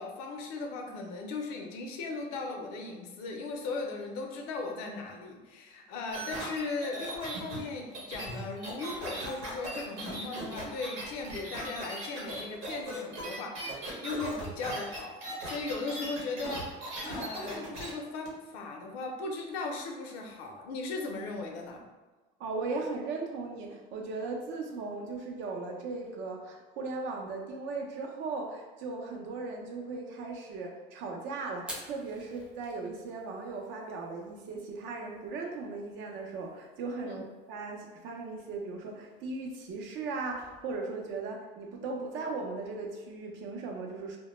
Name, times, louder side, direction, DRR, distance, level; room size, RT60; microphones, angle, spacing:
voice 1, 0.0-21.8 37.0-37.2, left 3 dB, 90° left, 2 dB, 0.5 m, -38 dB
sound 1, 6.1-17.9 18.3-18.4, right 1 dB, 85° right, 0.9 m, -38 dB
voice 2, 22.4-44.2, right 3 dB, 65° right, 1 dB, 0.6 m, -37 dB
Fire, 31.6-40.8, right 1 dB, 5° right, 0.4 m, -53 dB
2.1 x 2.1 x 3.0 m, 1.3 s
supercardioid pair, 110°, 21 cm